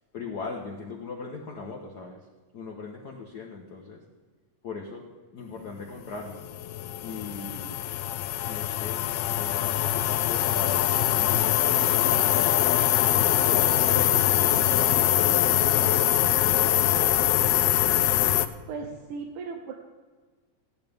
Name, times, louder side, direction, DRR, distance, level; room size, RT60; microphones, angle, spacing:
voice 1, 0.1-2.2 2.5-4.0 4.6-5.0 5.3-6.4 7.0-7.8 8.5-11.6 12.0-12.6 13.0-17.5, left 4 dB, 70° left, 0 dB, 0.9 m, -39 dB
sound 1, 6.3-18.5, left 13 dB, 90° left, 1.4 m, -23 dB
voice 2, 18.7-19.7, right 4 dB, 90° right, 3 dB, 2.4 m, -36 dB
16.0 x 11.5 x 3.5 m, 1.4 s
omnidirectional pair, 3.4 m